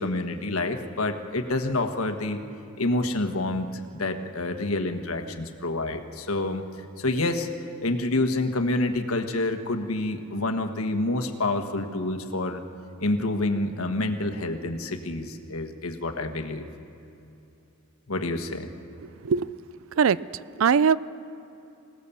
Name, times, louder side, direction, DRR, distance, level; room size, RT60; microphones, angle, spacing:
voice 1, 0.0-2.4 2.8-6.6 7.0-7.5 7.8-12.6 13.0-16.7 18.1-18.7, left 2 dB, 85° left, 6 dB, 1.4 m, -28 dB
voice 2, 19.0-19.6 19.9-21.0, right 6 dB, 65° right, 19 dB, 0.4 m, -22 dB
26.0 x 18.0 x 7.1 m, 2.8 s
head